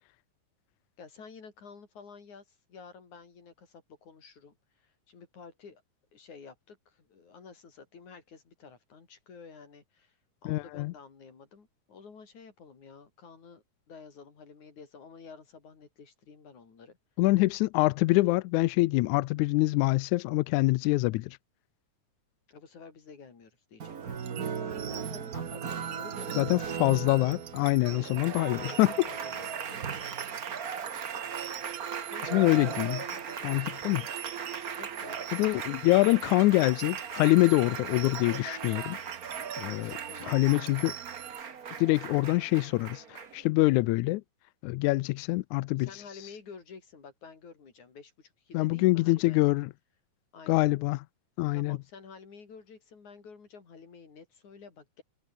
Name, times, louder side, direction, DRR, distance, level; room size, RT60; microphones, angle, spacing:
voice 1, 1.0-5.8 6.1-17.0 22.5-27.0 28.3-30.4 32.1-33.6 34.8-36.7 39.6-39.7 40.1-40.5 45.8-49.4 50.3-50.7 51.5-55.0, left 5 dB, 60° left, 5.8 m, -51 dB
voice 2, 10.5-10.9 17.2-21.4 26.4-28.9 32.3-33.0 33.4-34.1 35.3-39.0 39.6-40.0 40.3-40.9 41.8-44.2 44.6-46.0 48.5-49.7 50.5-51.0 51.4-51.8, left 20 dB, 80° left, 1.8 m, -25 dB
Applause, 23.8-43.5, right 7 dB, 45° right, 1.1 m, -38 dB
sound 1, 24.2-41.4, right 11 dB, 65° right, 1.3 m, -44 dB
omnidirectional pair, 3.8 m